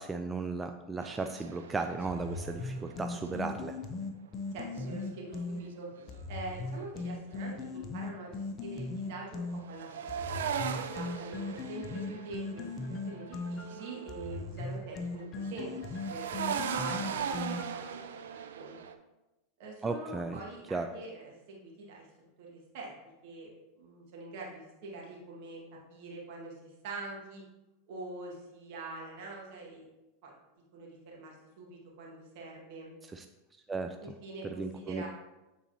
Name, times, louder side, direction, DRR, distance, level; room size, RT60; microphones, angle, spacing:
voice 1, 0.0-3.8 19.8-20.4 20.7-20.9 33.1-33.2 33.7-34.0 34.4-35.0, right 3 dB, 15° right, 6 dB, 0.3 m, -35 dB
sound 1, 1.0-3.9 4.7-7.4 9.1-14.6 14.9-18.9, right 7 dB, 85° right, 0.5 m, -40 dB
sound 2, 2.1-5.6 6.1-9.6 10.1-17.9, left 3 dB, 35° left, 0.7 m, -38 dB
voice 2, 4.5-5.9 6.3-10.1 10.9-18.8 19.6-22.1 22.4-22.9 23.2-23.5 23.8-25.6 25.9-27.4 27.9-29.9 30.2-30.3 30.7-32.9 34.0-35.1, right 3 dB, 65° right, -2 dB, 2.0 m, -44 dB
8.7 x 4.0 x 2.9 m, 1.0 s
hypercardioid pair, 115°, 0 cm